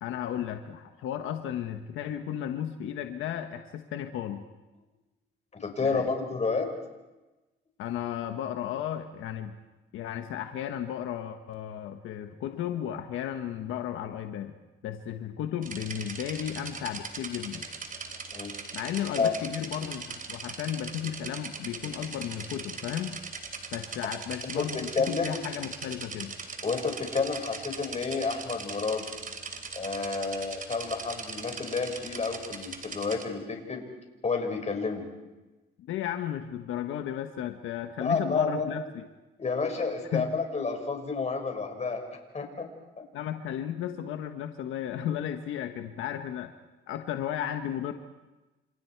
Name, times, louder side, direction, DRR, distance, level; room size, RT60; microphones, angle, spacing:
voice 1, 0.0-4.4 5.8-6.1 7.8-9.5 9.9-14.5 14.8-17.7 18.7-23.2 23.7-26.3 35.8-39.1 40.1-40.3 43.1-46.5 46.9-47.9, left 10 dB, 85° left, 6 dB, 1.3 m, -34 dB
voice 2, 5.6-6.7 18.3-18.5 19.2-19.4 25.0-25.3 26.6-29.1 29.7-33.8 34.2-35.1 38.0-38.8 39.4-42.1 42.3-42.7 43.0-43.1, left 4 dB, 35° left, 4 dB, 5.7 m, -30 dB
sound 1, 15.6-33.2, right 4 dB, 45° right, 3.2 m, -40 dB
30.0 x 27.5 x 4.7 m, 1.1 s
cardioid pair, 90°, 20 cm